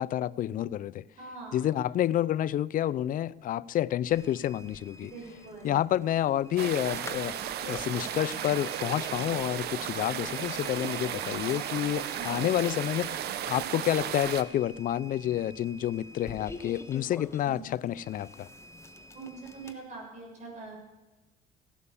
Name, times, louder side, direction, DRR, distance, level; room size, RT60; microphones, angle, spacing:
voice 1, 0.0-1.0 1.5-5.1 5.6-18.5, left 12 dB, 55° left, 0.5 m, -29 dB
voice 2, 1.2-1.6 5.0-5.8 12.1-12.5 17.4-17.6 19.1-20.7, right 4 dB, 45° right, 6.8 m, -43 dB
sound 1, 4.1-19.7, left 2 dB, 15° left, 1.4 m, -48 dB
sound 2, 6.6-14.4, right 10 dB, 70° right, 1.0 m, -35 dB
16.5 x 11.5 x 7.1 m
cardioid pair, 110°, 17 cm